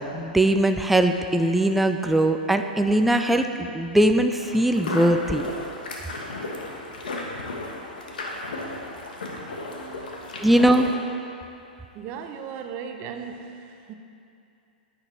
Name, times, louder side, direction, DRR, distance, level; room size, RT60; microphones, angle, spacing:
voice 1, 0.0-5.4 10.4-10.9, right 1 dB, 5° right, 6 dB, 0.3 m, -20 dB
sound 1, 4.4-10.9, left 2 dB, 70° left, 1.3 m, -34 dB
voice 2, 8.5-9.0 9.4-10.5 10.7-10.9 11.9-13.9, right 7 dB, 35° right, 6 dB, 0.8 m, -39 dB
10.5 x 9.4 x 3.4 m, 2.6 s
figure-of-eight pair, 105°, 5 cm